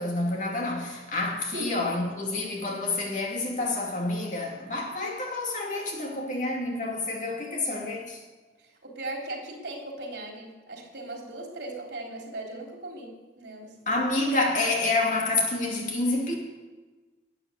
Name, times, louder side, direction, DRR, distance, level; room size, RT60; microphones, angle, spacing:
voice 1, 0.0-8.2 13.9-16.3, left 2 dB, 45° left, 2.6 m, -28 dB
voice 2, 8.8-13.7, right 1 dB, 70° right, 3.4 m, -38 dB
12.5 x 8.9 x 7.8 m
head